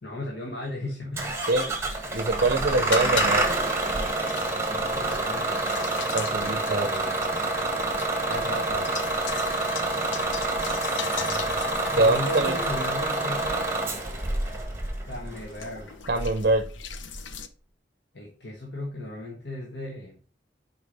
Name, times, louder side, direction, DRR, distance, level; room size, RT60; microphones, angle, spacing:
voice 1, 0.0-1.3 1.6-1.7 4.7-5.9 6.4-7.1 8.2-9.1 11.8-13.7 15.0-15.9 18.1-20.2, left 1 dB, 65° left, -1 dB, 1.4 m, -36 dB
Bus / Engine starting, 1.2-17.4, right 2 dB, 15° right, 1.5 m, -28 dB
sound 1, 2.0-17.5, left 7 dB, 90° left, 0.7 m, -39 dB
voice 2, 2.1-3.5 6.1-6.9 11.9-12.6 16.1-16.7, right 2 dB, 50° right, 8 dB, 0.7 m, -24 dB
6.5 x 4.8 x 5.3 m, 0.40 s
head